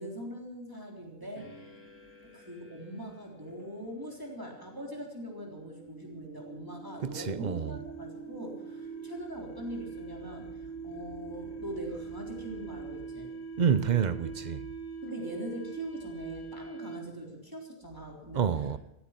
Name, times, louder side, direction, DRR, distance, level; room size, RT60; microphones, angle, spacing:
voice 1, 0.0-1.7 2.3-13.3 15.0-18.5, equal, 15° right, 3.6 m, -42 dB
sound 1, 1.4-17.3, right 4 dB, 70° left, 3.5 m, -44 dB
voice 2, 7.0-7.8 13.6-14.7 18.3-18.8, right 7 dB, 45° right, 0.7 m, -28 dB
16.0 x 14.5 x 5.9 m
omnidirectional pair, 1.4 m